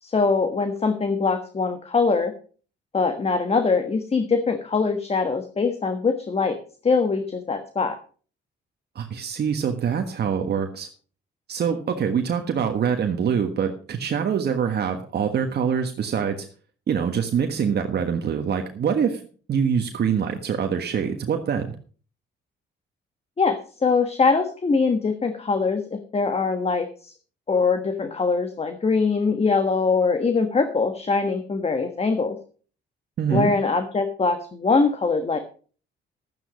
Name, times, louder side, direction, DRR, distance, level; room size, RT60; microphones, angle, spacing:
voice 1, 0.0-2.3 2.9-6.6 6.8-8.0 23.4-27.1 27.5-32.4 33.3-35.4, left 4 dB, 30° left, 8 dB, 1.4 m, -22 dB
voice 2, 8.9-10.9 11.5-16.5 16.9-19.2 19.5-21.8 33.2-33.5, right 7 dB, 55° right, 4 dB, 1.5 m, -24 dB
12.5 x 9.3 x 5.1 m, 0.41 s
cardioid pair, 90°, 20 cm